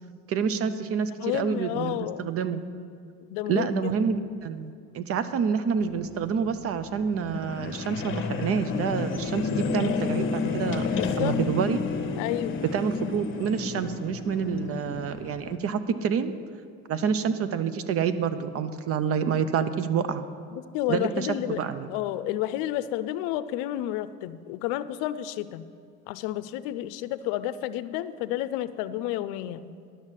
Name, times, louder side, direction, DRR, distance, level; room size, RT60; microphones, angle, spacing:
voice 1, 0.3-2.0 2.2-2.6 3.5-10.8 11.2-11.8 12.7-16.3 16.9-20.2 20.9-21.3 21.6-21.9, right 6 dB, 45° right, 12 dB, 0.7 m, -27 dB
voice 2, 1.0-2.3 3.3-3.9 11.0-11.4 12.2-12.6 20.5-25.7 26.1-29.7, left 13 dB, 80° left, 14 dB, 0.6 m, -31 dB
sound 1, 5.8-15.6, left 5 dB, 40° left, 1.0 m, -31 dB
11.0 x 6.3 x 7.5 m, 2.3 s
supercardioid pair, 110°, 32 cm